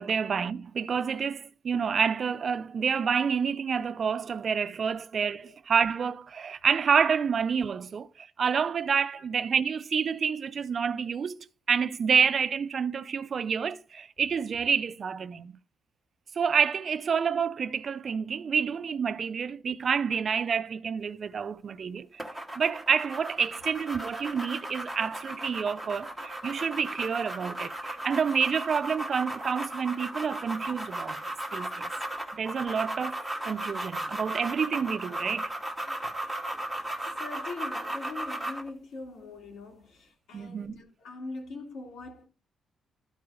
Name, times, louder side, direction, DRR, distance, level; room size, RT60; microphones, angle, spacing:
voice 1, 0.0-11.4 11.7-15.5 16.4-22.2 22.6-31.2 31.5-31.9 32.3-33.2 33.5-35.5 40.3-40.7, right 6 dB, 40° right, 0.5 m, -28 dB
sound 1, 22.2-38.7, right 1 dB, 5° left, 1.2 m, -36 dB
voice 2, 37.2-42.3, left 3 dB, 90° left, 3.0 m, -42 dB
12.5 x 4.7 x 5.0 m
wide cardioid pair, 170°, 0 cm